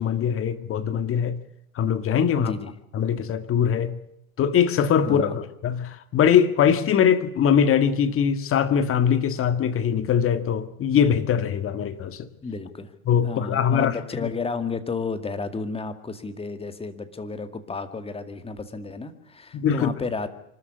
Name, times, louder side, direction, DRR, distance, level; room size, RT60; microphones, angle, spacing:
voice 1, 0.0-1.4 1.8-2.5 2.9-4.0 4.4-12.3 13.1-13.9 14.2-14.3 19.5-19.9, left 8 dB, 30° left, 1.9 m, -22 dB
voice 2, 2.4-2.7 5.1-5.4 12.4-12.9 13.2-20.3, left 4 dB, 15° left, 2.1 m, -32 dB
25.0 x 13.5 x 9.5 m
hypercardioid pair, 105°, 43 cm